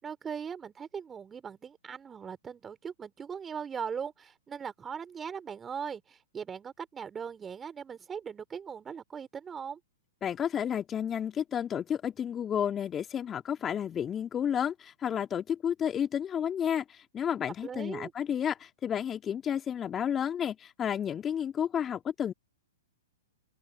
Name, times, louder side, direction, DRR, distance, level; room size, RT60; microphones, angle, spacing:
voice 1, 0.0-9.8 17.6-18.1, right 7 dB, 15° right, 4.4 m, -39 dB
voice 2, 10.2-22.3, left 9 dB, 20° left, 2.4 m, -31 dB
open air
figure-of-eight pair, 115°, 0 cm